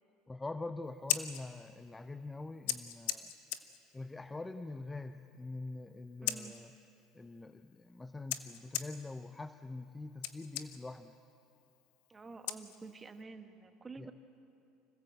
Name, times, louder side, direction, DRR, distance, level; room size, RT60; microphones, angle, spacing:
voice 1, 0.3-3.3 3.9-6.7 7.1-11.1 14.0-14.1, left 2 dB, 10° left, 10 dB, 0.6 m, -44 dB
Scissors, 0.8-13.2, left 13 dB, 85° left, 1.0 m, -43 dB
voice 2, 6.2-6.5 12.1-14.1, right 4 dB, 20° right, 7 dB, 1.4 m, -49 dB
25.5 x 16.5 x 8.0 m, 2.8 s
supercardioid pair, 120°, 0 cm